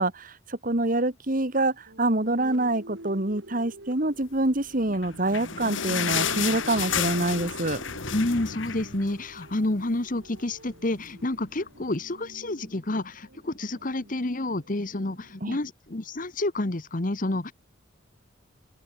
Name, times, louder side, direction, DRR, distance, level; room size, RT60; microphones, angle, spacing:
voice 1, 0.0-7.8 15.4-15.6, right 2 dB, 45° right, 2.1 m, -26 dB
sound 1, 1.9-15.6, right 1 dB, 75° right, 4.6 m, -48 dB
sound 2, 4.9-9.6 10.0-10.1 10.4-10.5 11.2-11.3, left 7 dB, 80° left, 2.5 m, -31 dB
voice 2, 8.1-17.5, left 2 dB, 45° left, 1.2 m, -29 dB
open air
head